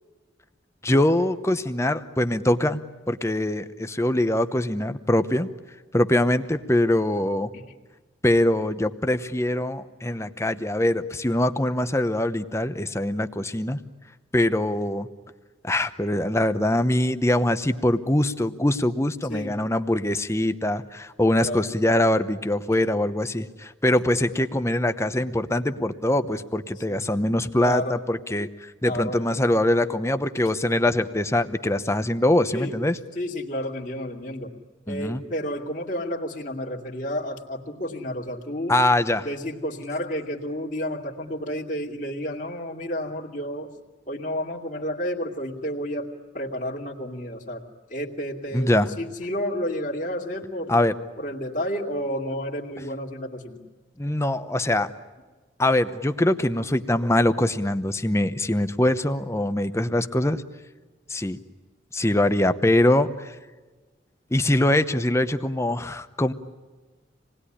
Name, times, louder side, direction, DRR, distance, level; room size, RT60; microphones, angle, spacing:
voice 1, 0.8-5.5 5.9-7.5 8.2-13.8 14.3-15.1 15.6-33.0 34.9-35.2 38.7-39.3 48.5-48.9 50.7-50.9 54.0-54.9 55.6-60.4 61.1-61.4 61.9-63.3 64.3-66.3, left 1 dB, 15° left, 10 dB, 0.9 m, -23 dB
voice 2, 19.3-19.6 21.4-21.7 26.9-27.0 27.6-28.0 28.8-29.3 32.5-32.8 33.2-34.5 34.9-38.8 39.2-43.7 44.1-46.1 46.3-47.6 47.9-50.8 51.2-53.6, equal, 40° left, -1 dB, 2.4 m, -31 dB
27.5 x 19.5 x 10.0 m, 1.3 s
head